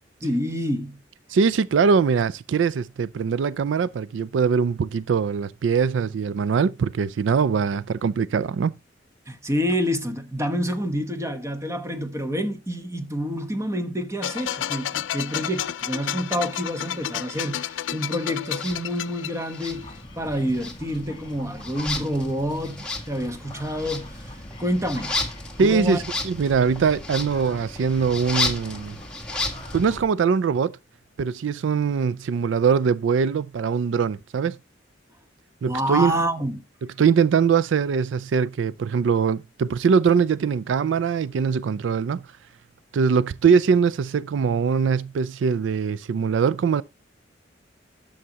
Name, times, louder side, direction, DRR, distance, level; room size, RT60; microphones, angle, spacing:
voice 1, 0.2-1.0 9.3-24.3 24.6-25.2 25.6-26.0 35.6-36.6, equal, 15° right, 1.0 m, -28 dB
voice 2, 1.3-8.7 25.6-29.0 29.7-30.8 31.2-34.6 35.6-36.1 37.0-42.3 42.9-46.8, right 6 dB, 80° right, 0.4 m, -22 dB
sound 1, 14.2-20.0, left 10 dB, 80° left, 0.4 m, -31 dB
sound 2, 18.5-18.8 19.5-20.3 20.5-30.0, left 2 dB, 5° left, 1.5 m, -33 dB
sound 3, 19.7-30.0, left 1 dB, 25° left, 2.3 m, -41 dB
11.0 x 6.5 x 2.8 m
head